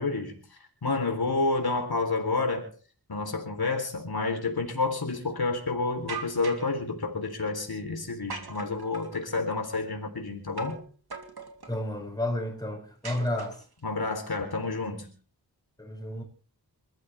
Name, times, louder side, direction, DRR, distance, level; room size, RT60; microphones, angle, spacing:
voice 1, 0.0-2.7 3.1-10.8 13.8-15.1, left 3 dB, 70° left, 3.7 m, -29 dB
sound 1, 6.1-6.7 8.3-9.2 10.6-10.8 11.1-11.8 13.0-13.8, right 4 dB, 70° right, 3.2 m, -39 dB
voice 2, 11.7-13.6 15.8-16.2, left 1 dB, 10° left, 6.3 m, -31 dB
27.5 x 14.5 x 3.4 m
wide cardioid pair, 95°, 39 cm